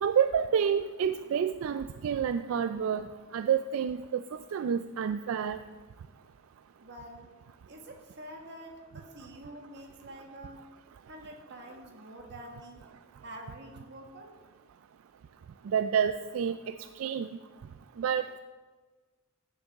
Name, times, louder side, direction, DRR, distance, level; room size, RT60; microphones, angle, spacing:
voice 1, 0.0-3.1 3.3-4.2 4.5-5.6 15.7-17.3 18.0-18.4, right 8 dB, 85° right, 10 dB, 0.3 m, -29 dB
voice 2, 6.8-7.3 7.6-10.6 11.1-12.8 13.2-14.3, right 1 dB, 60° right, 2 dB, 1.6 m, -47 dB
15.0 x 6.7 x 3.6 m, 1.4 s
head